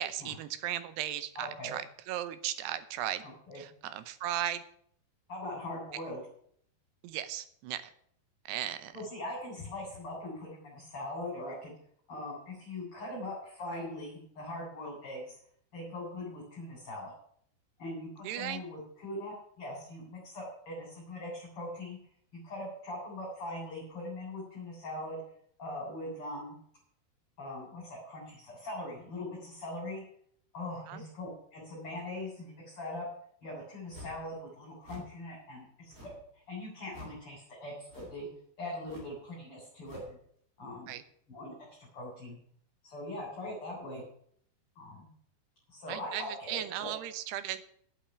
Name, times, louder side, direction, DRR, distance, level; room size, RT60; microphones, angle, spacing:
voice 1, 0.0-3.3 3.6-4.6 7.0-7.9 8.5-8.9 18.2-18.6 30.9-31.0 40.9-41.0 45.9-47.8, right 12 dB, 75° right, 13 dB, 2.8 m, -36 dB
voice 2, 1.4-1.8 3.2-3.6 5.3-6.2 8.9-11.7 12.1-15.4 15.7-17.1 17.8-22.0 22.3-25.2 25.6-26.5 27.4-30.0 30.5-33.1 33.4-36.1 36.5-38.3 38.6-40.2 40.6-40.9 41.3-42.4 42.8-44.0 44.8-45.1 45.7-46.9, left 1 dB, 30° left, -3 dB, 4.1 m, -41 dB
sound 1, 33.9-34.3 34.8-35.2 35.9-36.3 36.9-37.2 37.9-38.3 38.8-39.2 39.8-40.2, left 1 dB, 15° right, 3.1 m, -49 dB
9.0 x 8.3 x 9.5 m, 0.64 s
omnidirectional pair, 5.0 m